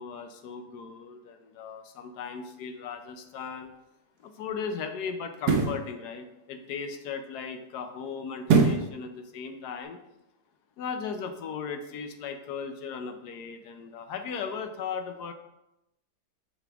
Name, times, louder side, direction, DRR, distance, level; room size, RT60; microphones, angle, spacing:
voice 1, 0.0-3.7 4.2-10.0 10.8-15.3, left 6 dB, 80° left, 7 dB, 1.2 m, -37 dB
sound 1, 3.5-3.6 5.3-5.8 8.5-8.9 9.4-9.5, right 4 dB, 75° right, 1.3 m, -22 dB
6.9 x 4.2 x 3.4 m, 0.89 s
omnidirectional pair, 1.7 m